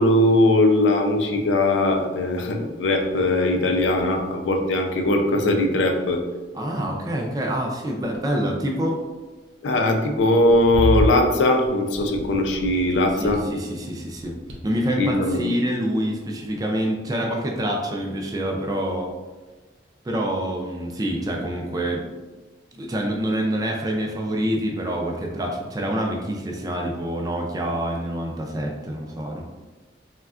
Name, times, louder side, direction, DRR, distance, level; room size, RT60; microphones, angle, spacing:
voice 1, 0.0-6.2 9.6-13.4 15.0-15.4, left 1 dB, 90° left, 4 dB, 0.4 m, -20 dB
sound 1, 3.0-3.3 3.5-5.2 6.0-6.5 6.7-7.0 7.8-8.8 10.1-13.7 14.0-15.0, equal, 75° right, 0.5 m, -31 dB
voice 2, 6.5-9.0 13.2-14.3 14.6-19.1 20.0-22.1 22.7-29.4, right 1 dB, 20° right, 0 dB, 0.4 m, -26 dB
3.4 x 2.2 x 2.4 m, 1.2 s
head